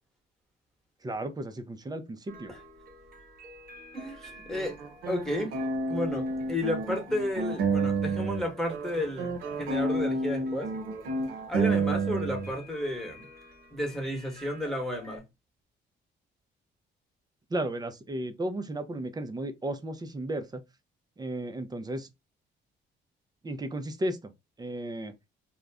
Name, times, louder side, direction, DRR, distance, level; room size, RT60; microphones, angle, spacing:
voice 1, 1.0-2.5 17.5-20.6 21.2-22.1 23.4-24.3 24.6-25.1, right 1 dB, 20° right, 0.5 m, -34 dB
sound 1, 2.3-15.2, right 2 dB, 45° right, 1.1 m, -51 dB
voice 2, 3.9-4.8 5.1-5.5 5.9-10.7 11.5-13.2 13.7-15.2, left 1 dB, ahead, 1.1 m, -32 dB
sound 2, 4.5-8.4 8.7-12.5, right 3 dB, 85° right, 0.7 m, -30 dB
2.4 x 2.1 x 3.4 m
cardioid pair, 90°, 20 cm